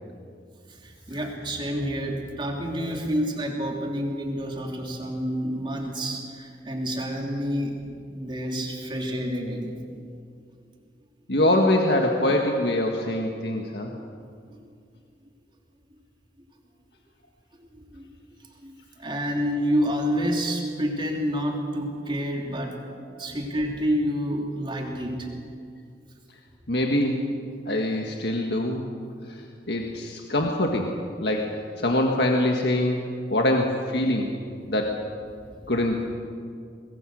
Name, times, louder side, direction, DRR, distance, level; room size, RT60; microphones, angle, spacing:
voice 1, 0.7-7.7 8.1-9.7 14.0-14.1 14.5-14.6 17.6-18.0 18.6-25.3, equal, 25° right, 0 dB, 3.3 m, -29 dB
voice 2, 11.3-13.9 26.7-27.1 27.6-28.8 29.7-33.0 33.3-34.3 34.6-35.0 35.7-36.1, left 1 dB, 65° left, 1 dB, 1.8 m, -24 dB
24.5 x 21.5 x 6.5 m, 2.3 s
head